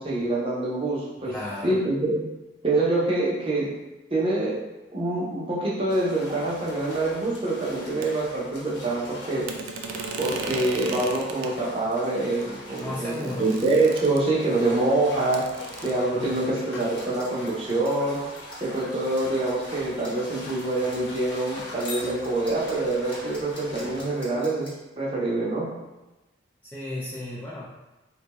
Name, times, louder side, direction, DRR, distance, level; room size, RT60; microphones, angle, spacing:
voice 1, 0.0-1.3 1.6-2.2 2.6-3.7 4.1-4.6 4.9-9.4 10.2-15.5 15.8-18.2 18.6-24.7 25.0-25.7, right 2 dB, 30° right, -6 dB, 0.7 m, -25 dB
voice 2, 1.2-1.8 12.8-13.5 16.2-16.5 26.6-27.7, left 1 dB, 10° left, -8 dB, 0.4 m, -34 dB
sound 1, 5.9-24.3, left 1 dB, 65° left, 0.9 m, -42 dB
sound 2, 8.0-8.1 9.5-11.5 12.4-12.5 12.8-14.5 15.3-15.9, right 4 dB, 90° right, 0.4 m, -36 dB
sound 3, 16.3-24.7, left 1 dB, 30° left, 1.1 m, -44 dB
3.8 x 2.2 x 2.9 m, 1.0 s
head